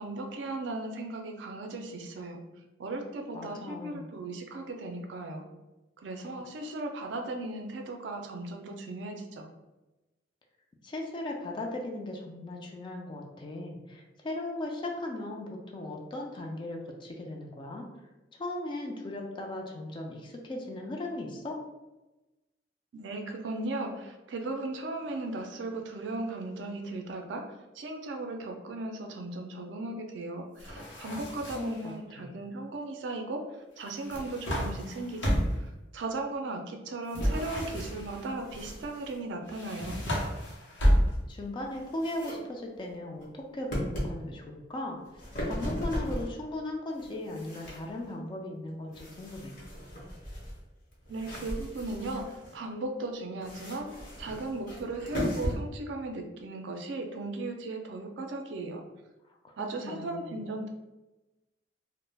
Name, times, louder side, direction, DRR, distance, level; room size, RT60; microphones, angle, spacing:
voice 1, 0.0-2.4 2.8-5.4 6.0-9.5 22.9-27.4 27.7-40.0 51.1-53.9 54.2-58.8 59.6-60.7, right 2 dB, 70° right, 4 dB, 0.4 m, -37 dB
voice 2, 3.3-4.1 10.8-17.8 18.3-21.6 31.5-32.3 41.3-43.7 44.0-45.0 45.5-49.5 59.4-59.5 59.8-60.3, left 1 dB, 25° left, 0 dB, 0.3 m, -37 dB
sound 1, 30.6-31.9 33.9-35.7 37.1-38.3 39.5-41.4, equal, 85° left, 0.7 m, -30 dB
sound 2, 37.1-39.3 39.7-40.9 41.4-42.4 42.8-43.2 43.7-44.1 44.9-46.4 46.9-48.1 48.9-52.6 53.4-55.6, equal, 55° left, 0.9 m, -38 dB
2.2 x 2.0 x 3.2 m, 1.0 s
head